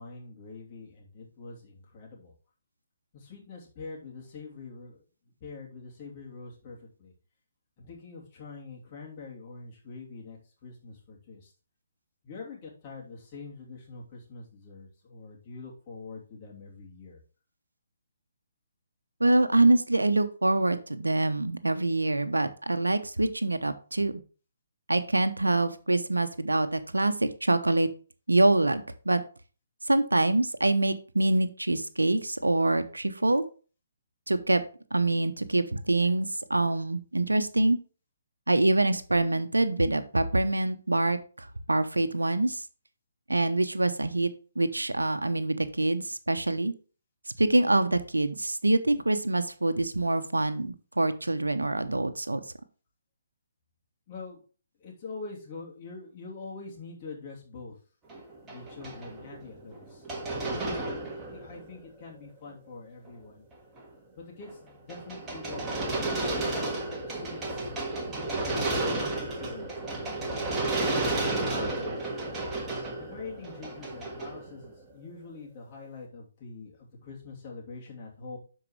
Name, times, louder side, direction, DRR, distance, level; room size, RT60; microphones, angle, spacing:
voice 1, 0.0-2.3 3.1-5.0 5.4-7.1 7.8-11.5 12.2-17.2 54.1-54.4 54.8-57.8 58.4-60.0 60.6-63.4 64.1-66.8 67.1-70.5 71.1-72.1 73.0-78.4, left 4 dB, 35° left, -3 dB, 3.0 m, -45 dB
voice 2, 19.2-24.2 24.9-27.9 28.3-29.2 29.9-33.4 34.3-34.6 34.9-37.8 38.5-42.6 43.3-44.3 44.6-46.7 47.4-52.4, right 2 dB, 85° right, 10 dB, 0.8 m, -25 dB
sound 1, 58.1-61.9 62.2-62.3 63.1-63.2 63.5-63.9 64.5-74.9, right 2 dB, 15° right, 1.7 m, -32 dB
12.0 x 4.7 x 3.2 m, 0.38 s
figure-of-eight pair, 140°, 0 cm